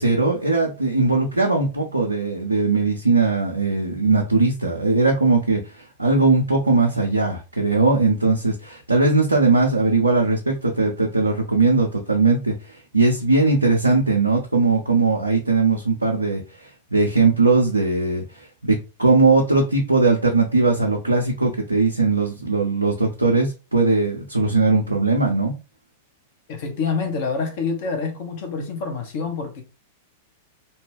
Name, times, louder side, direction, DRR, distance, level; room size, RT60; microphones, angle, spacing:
voice 1, 0.0-25.6, right 3 dB, 85° right, 0.5 m, -19 dB
voice 2, 26.5-29.6, left 4 dB, 50° left, 0.9 m, -27 dB
2.7 x 2.2 x 3.2 m
figure-of-eight pair, 95°, 0 cm